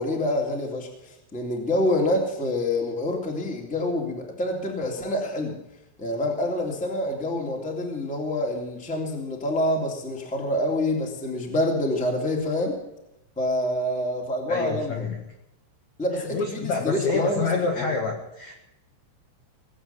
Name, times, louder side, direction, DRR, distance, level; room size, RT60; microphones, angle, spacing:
voice 1, 0.0-5.6 6.0-12.8 13.4-15.1 16.0-17.5 17.8-17.9, left 1 dB, ahead, 0 dB, 1.8 m, -27 dB
voice 2, 14.5-15.2 16.3-18.5, left 4 dB, 60° left, 1 dB, 2.0 m, -27 dB
20.0 x 9.0 x 7.2 m, 0.86 s
omnidirectional pair, 5.9 m